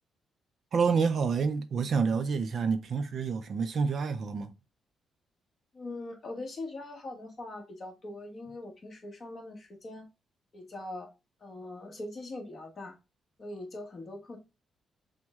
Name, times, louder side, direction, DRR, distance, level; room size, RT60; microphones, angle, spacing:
voice 1, 0.7-4.5, right 5 dB, 45° right, 0.4 m, -28 dB
voice 2, 5.7-10.0 10.5-11.1 11.4-12.9 13.4-14.4, left 2 dB, 35° left, 1.2 m, -41 dB
6.0 x 2.1 x 3.4 m
cardioid pair, 145°, 0 cm